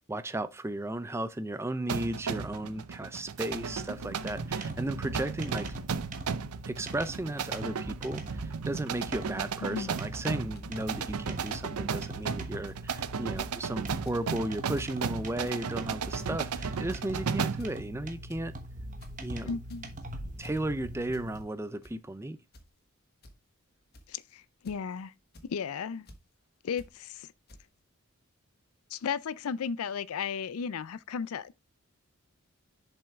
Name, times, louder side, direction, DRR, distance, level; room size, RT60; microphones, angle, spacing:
voice 1, 0.1-5.8 6.7-18.5 19.2-19.6 20.4-22.4, right 1 dB, 10° right, 0.4 m, -35 dB
sound 1, 1.9-17.7, right 6 dB, 90° right, 0.6 m, -35 dB
sound 2, 3.5-21.4, right 1 dB, 35° right, 1.2 m, -43 dB
voice 2, 9.6-10.0 19.4-19.9 24.1-25.1 25.5-26.1 26.6-27.3 28.9-31.5, left 6 dB, 80° left, 0.4 m, -35 dB
sound 3, 10.6-10.7 11.3-11.4 12.0-12.1 12.4-12.8 13.4-13.6 13.9-14.2 14.6-14.9 15.3-15.6 16.2-16.5 16.9-17.2 17.6-17.9 18.3-18.4 18.8-19.1 19.6-20.0 20.4-20.6 21.1-21.3 21.6-22.0 22.5-22.7 23.2-23.3 23.9-24.2 24.6-24.9 25.3-25.5 26.1-26.2 26.8-26.9 27.5-27.6, left 1 dB, 45° left, 1.3 m, -51 dB
7.0 x 5.5 x 3.6 m
head